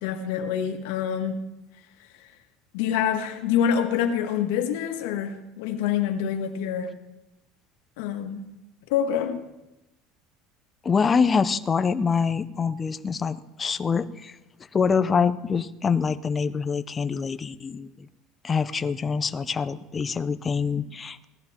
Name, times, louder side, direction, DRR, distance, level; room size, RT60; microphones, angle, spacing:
voice 1, 0.0-1.4 2.7-6.9 8.0-8.4 8.9-9.4, left 8 dB, 85° left, 1.8 m, -26 dB
voice 2, 10.8-14.4 14.7-18.1 18.4-21.2, left 5 dB, 20° left, 0.6 m, -25 dB
18.5 x 14.0 x 4.4 m
cardioid pair, 155°, 0 cm